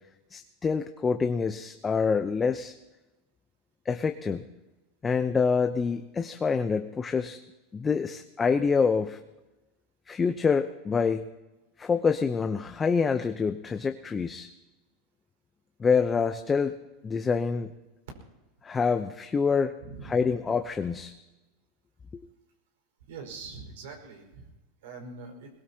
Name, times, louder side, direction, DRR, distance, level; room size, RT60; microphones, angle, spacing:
voice 1, 0.3-2.7 3.9-4.5 5.0-7.4 7.7-9.2 10.1-11.2 11.8-14.5 15.8-16.8 17.0-17.7 18.6-19.8 20.0-21.1 22.1-22.2, left 5 dB, 20° left, 8 dB, 0.8 m, -26 dB
voice 2, 19.8-20.2 23.1-24.5 24.8-25.5, right 4 dB, 75° right, 2 dB, 5.1 m, -43 dB
21.5 x 21.0 x 2.9 m, 1.1 s
hypercardioid pair, 100°, 0 cm